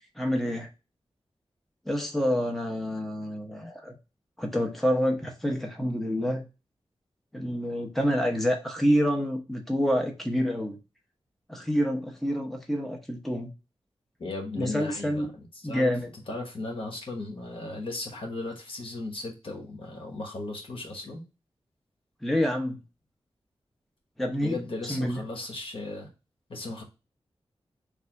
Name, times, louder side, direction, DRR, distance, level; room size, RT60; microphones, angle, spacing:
voice 1, 0.2-0.7 1.9-4.0 4.4-6.4 7.3-10.8 11.5-13.5 14.6-15.3 15.6-16.1 22.2-22.8 24.2-24.6 24.9-25.2, equal, ahead, 2 dB, 0.7 m, -27 dB
voice 2, 14.2-15.3 15.6-15.9 16.3-21.2 24.4-26.1 26.5-26.8, left 2 dB, 65° left, 1 dB, 1.1 m, -36 dB
3.3 x 2.5 x 4.4 m, 0.29 s
wide cardioid pair, 115°, 10 cm